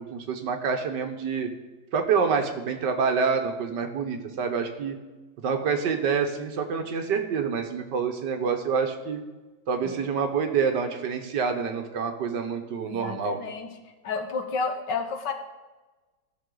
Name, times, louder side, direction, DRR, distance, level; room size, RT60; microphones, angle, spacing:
voice 1, 0.0-1.5 1.9-5.0 5.4-9.2 9.7-13.4, right 6 dB, 65° right, 5 dB, 1.6 m, -27 dB
voice 2, 9.8-10.1 12.8-13.7 14.0-15.3, left 4 dB, 65° left, 5 dB, 1.6 m, -31 dB
16.0 x 6.4 x 3.8 m, 1.2 s
omnidirectional pair, 2.1 m